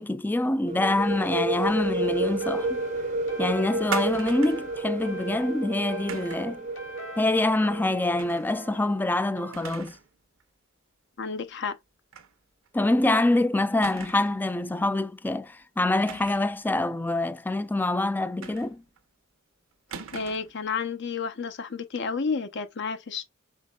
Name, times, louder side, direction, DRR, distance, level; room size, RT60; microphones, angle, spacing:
voice 1, 0.0-2.8 3.4-6.6 7.2-10.0 12.7-18.8, left 2 dB, 10° left, 0.3 m, -25 dB
sound 1, 0.7-8.3, right 2 dB, 40° right, 0.6 m, -31 dB
sound 2, 2.0-9.8, equal, 85° left, 2.0 m, -44 dB
sound 3, 3.9-4.7 6.1-6.5 8.2-8.5 8.9-9.0 9.5-10.1 10.4-10.5 12.1-12.3 12.7-12.8 13.8-14.4 16.0-16.6 18.4-19.0 19.9-20.6, right 6 dB, 85° right, 0.9 m, -39 dB
voice 2, 11.2-11.8 20.1-23.2, left 5 dB, 60° left, 0.8 m, -31 dB
5.5 x 4.1 x 2.3 m
head